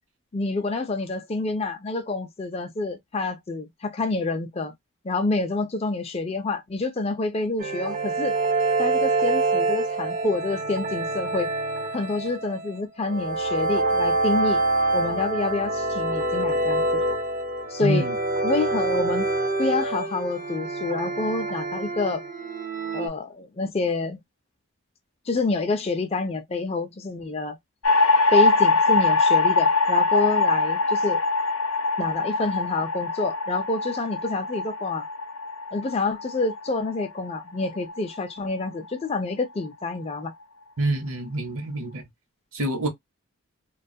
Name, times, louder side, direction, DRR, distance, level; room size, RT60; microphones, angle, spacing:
voice 1, 0.3-4.7 5.0-8.3 8.8-11.5 11.9-14.6 14.9-17.0 17.7-18.1 18.4-19.3 19.6-22.2 22.9-24.2 25.3-27.6 28.3-31.2 32.0-35.0 35.7-40.3, left 3 dB, 25° left, 0.4 m, -27 dB
sound 1, 7.6-23.1, right 2 dB, 35° right, 0.4 m, -26 dB
voice 2, 17.8-18.1 40.8-42.0 42.5-42.9, right 2 dB, 65° right, 0.9 m, -26 dB
sound 2, 27.8-38.2, left 3 dB, 70° left, 0.6 m, -23 dB
2.4 x 2.3 x 2.6 m
head